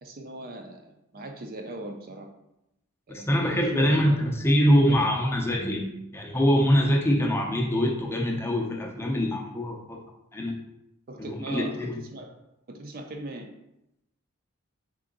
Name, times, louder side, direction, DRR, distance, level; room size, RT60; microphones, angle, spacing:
voice 1, 0.0-2.3 3.1-4.3 4.7-5.1 11.1-12.3 12.7-13.5, right 1 dB, 45° right, 4 dB, 0.5 m, -39 dB
voice 2, 3.1-10.0 10.3-10.5 11.2-12.0, equal, 10° left, 0 dB, 0.5 m, -24 dB
3.7 x 3.4 x 3.9 m, 0.86 s
head